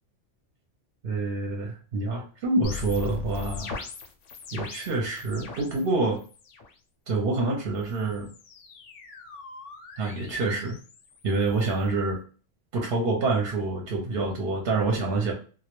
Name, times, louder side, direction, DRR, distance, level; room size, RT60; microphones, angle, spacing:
voice 1, 1.0-3.8 4.5-6.2 7.1-8.3 10.0-10.8 11.2-12.2 12.7-15.3, right 3 dB, 60° right, 1 dB, 0.7 m, -27 dB
sound 1, 2.6-5.9 6.2-6.7 7.7-11.9, left 5 dB, 80° left, 0.9 m, -40 dB
2.2 x 2.1 x 2.9 m, 0.38 s
omnidirectional pair, 1.2 m